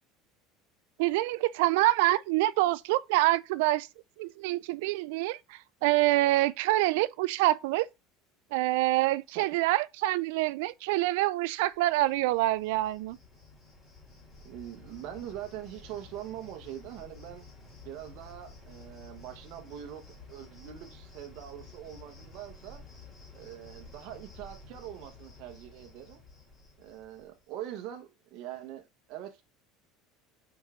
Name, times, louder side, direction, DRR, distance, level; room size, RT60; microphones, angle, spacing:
voice 1, 1.0-3.9 4.2-7.9 8.5-13.2, right 17 dB, 80° right, 0.3 m, -26 dB
Cricket, 11.7-27.4, left 3 dB, 25° left, 3.5 m, -52 dB
voice 2, 14.4-17.4 17.8-22.8 23.3-26.2 26.8-29.4, right 11 dB, 60° right, 1.0 m, -43 dB
5.2 x 4.8 x 3.7 m
cardioid pair, 140°, 0 cm